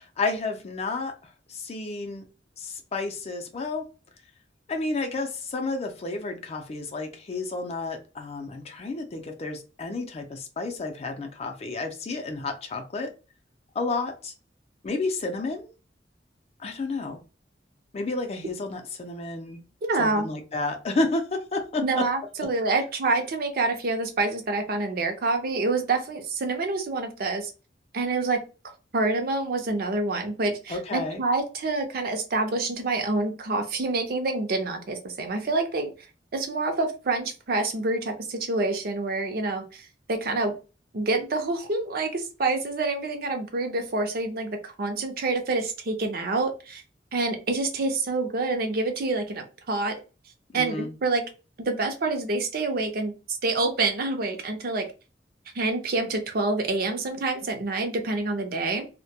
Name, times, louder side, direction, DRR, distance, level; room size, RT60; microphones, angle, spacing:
voice 1, 0.0-2.2 2.6-3.9 4.7-13.1 13.7-14.3 14.8-15.7 16.6-17.2 17.9-19.6 20.0-22.0 30.7-31.2 50.5-51.0, left 3 dB, 35° left, 4 dB, 0.4 m, -31 dB
voice 2, 19.8-20.3 21.8-27.5 27.9-28.4 28.9-35.9 36.3-40.5 40.9-46.8 47.1-50.0 50.5-51.3 51.6-54.9 55.5-58.9, right 3 dB, 55° right, 5 dB, 0.5 m, -27 dB
2.1 x 2.1 x 2.7 m, 0.32 s
head